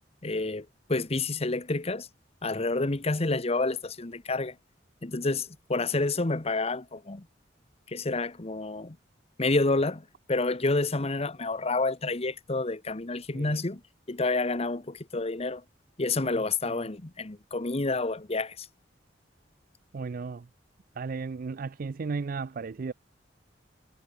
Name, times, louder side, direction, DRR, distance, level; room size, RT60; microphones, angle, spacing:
voice 1, 0.2-2.1 2.4-4.5 5.0-7.2 7.9-9.0 9.4-10.0 10.3-13.8 14.1-15.6 16.0-18.5, left 3 dB, 35° left, 1.1 m, -29 dB
voice 2, 16.2-16.8 19.9-20.4 21.0-22.9, right 4 dB, 50° right, 0.4 m, -35 dB
head